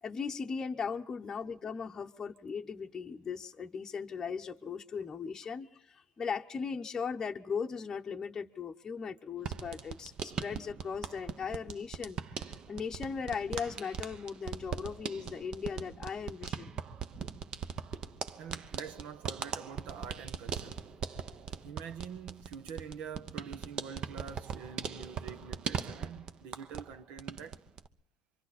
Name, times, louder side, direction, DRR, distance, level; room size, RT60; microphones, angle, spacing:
voice 1, 0.0-16.8, left 6 dB, 20° left, 0.9 m, -38 dB
sound 1, 9.4-26.9 27.2-27.9, right 7 dB, 35° right, 1.0 m, -40 dB
voice 2, 18.4-20.9 21.6-27.6, right 7 dB, 65° right, 1.3 m, -46 dB
27.0 x 24.5 x 4.2 m
cardioid pair, 150°, 2 cm